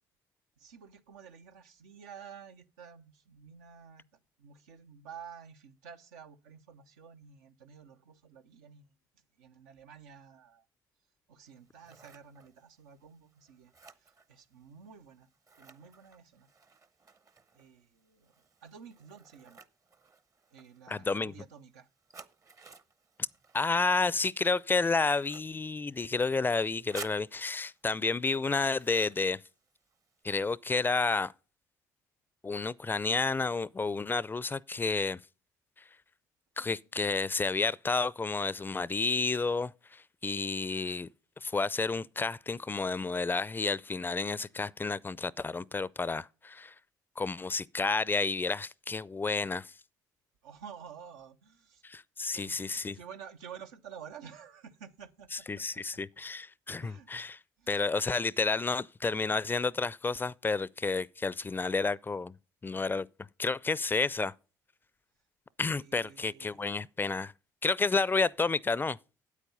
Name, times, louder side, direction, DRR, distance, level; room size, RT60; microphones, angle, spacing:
voice 1, 0.6-8.9 9.4-10.6 11.3-15.3 15.6-16.5 17.5-18.3 18.6-19.6 20.5-21.9 50.4-51.8 52.2-56.0 56.8-57.1 57.6-57.8 65.7-66.7, right 7 dB, 85° right, 0.7 m, -51 dB
Scissors, 11.5-30.2, right 4 dB, 35° right, 0.8 m, -55 dB
voice 2, 20.9-21.3 23.5-29.4 30.2-31.3 32.4-35.2 36.6-41.1 41.4-46.7 47.2-49.7 51.8-53.0 55.5-57.4 57.7-62.3 62.6-63.1 63.4-64.3 65.6-67.3 67.6-69.0, left 4 dB, 20° left, 0.4 m, -30 dB
8.4 x 8.4 x 5.4 m
hypercardioid pair, 55°, 9 cm